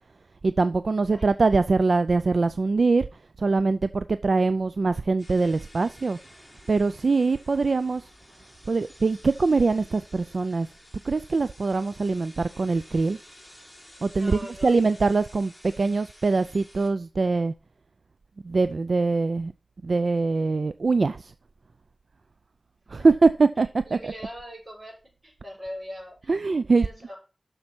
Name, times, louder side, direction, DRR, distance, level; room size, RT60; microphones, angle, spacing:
voice 1, 0.4-3.1 3.4-6.2 6.7-8.0 8.7-10.7 11.0-13.2 14.0-15.5 15.8-17.5 18.4-19.5 19.8-21.3 22.9-24.1 26.3-26.9, right 3 dB, 70° right, 0.4 m, -23 dB
sound 1, 5.2-16.9, left 1 dB, 10° left, 4.2 m, -52 dB
voice 2, 14.1-14.7 23.0-23.1 23.9-24.9 25.2-26.3 26.8-27.2, equal, 40° right, 5.5 m, -40 dB
7.2 x 6.5 x 5.9 m
wide cardioid pair, 70°, 0 cm